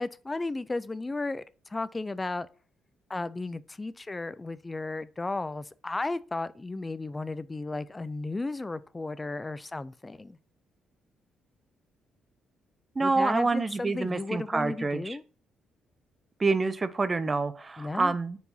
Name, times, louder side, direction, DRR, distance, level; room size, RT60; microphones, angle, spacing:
voice 1, 0.0-2.5 3.1-10.4 13.0-15.2 17.8-18.1, left 2 dB, 20° left, 0.4 m, -34 dB
voice 2, 13.0-15.2 16.4-18.4, right 3 dB, 25° right, 0.6 m, -27 dB
4.7 x 4.0 x 5.4 m
cardioid pair, 90°, 0 cm